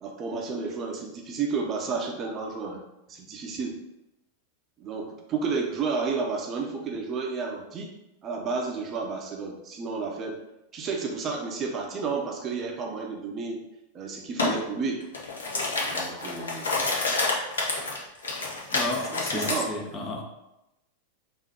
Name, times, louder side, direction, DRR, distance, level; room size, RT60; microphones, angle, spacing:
voice 1, 0.0-2.8 3.1-3.8 4.8-7.9 8.2-10.4 10.7-13.6 13.9-15.1 15.9-16.7 18.6-18.7 19.1-19.7, right 4 dB, 30° right, 1 dB, 0.7 m, -31 dB
sound 1, 14.4-14.6 15.0-19.6, left 3 dB, 70° left, 0.8 m, -28 dB
voice 2, 18.7-20.2, left 2 dB, 25° left, 2 dB, 0.8 m, -32 dB
3.6 x 2.8 x 4.4 m, 0.92 s
figure-of-eight pair, 90°, 0 cm